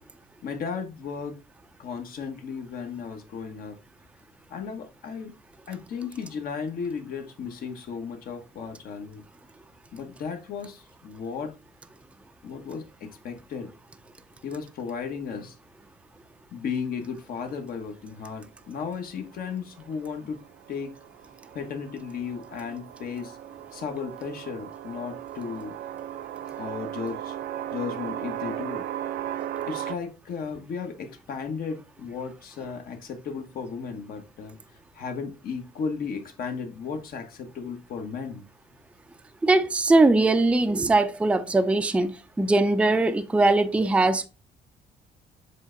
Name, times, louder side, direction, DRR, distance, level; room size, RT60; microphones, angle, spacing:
voice 1, 0.4-1.4 1.8-3.8 4.5-5.3 5.7-9.2 9.9-11.5 12.4-13.7 14.4-15.6 16.5-20.4 20.7-20.9 21.5-23.4 23.7-25.7 26.6-27.3 27.7-28.9 29.7-34.6 34.9-38.4, left 6 dB, 60° left, 1.2 m, -35 dB
sound 1, 19.8-30.0, right 11 dB, 70° right, 0.5 m, -36 dB
voice 2, 39.4-44.3, right 2 dB, 5° right, 0.5 m, -21 dB
7.4 x 3.3 x 3.8 m
cardioid pair, 110°, 17 cm